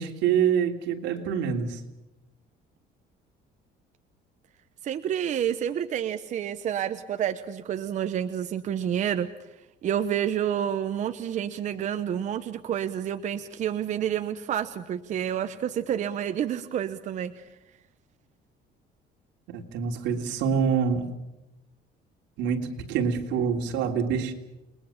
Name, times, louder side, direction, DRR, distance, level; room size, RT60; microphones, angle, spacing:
voice 1, 0.0-1.8 19.5-21.1 22.4-24.3, right 7 dB, 85° right, 3 dB, 3.2 m, -26 dB
voice 2, 4.8-9.3 9.8-17.3, right 9 dB, 40° right, 9 dB, 0.9 m, -29 dB
29.5 x 21.0 x 7.3 m, 0.94 s
cardioid pair, 160°, 18 cm